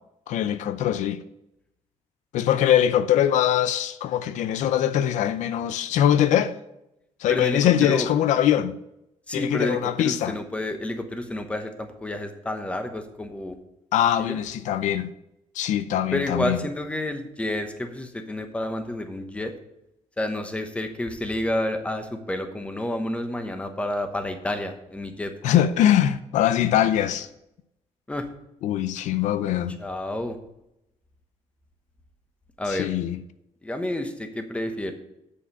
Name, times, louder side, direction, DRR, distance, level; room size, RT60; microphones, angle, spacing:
voice 1, 0.3-1.2 2.3-6.5 7.2-8.7 9.3-10.4 13.9-15.1 15.5-16.6 25.4-27.3 28.6-29.8 32.7-33.2, left 11 dB, 80° left, 0.5 m, -22 dB
voice 2, 7.3-8.1 9.3-13.5 14.2-14.4 16.1-19.5 20.2-25.3 28.1-28.3 29.8-30.4 32.6-32.9 33.6-34.9, left 1 dB, 10° left, 1.0 m, -29 dB
7.3 x 7.0 x 5.8 m
cardioid pair, 145°, 12 cm